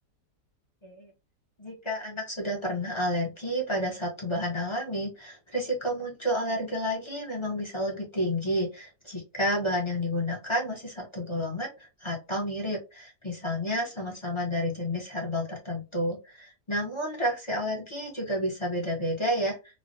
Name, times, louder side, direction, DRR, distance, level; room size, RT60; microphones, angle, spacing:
voice 1, 1.6-19.6, equal, 35° left, -2 dB, 0.5 m, -30 dB
3.1 x 2.2 x 2.6 m, 0.27 s
omnidirectional pair, 1.8 m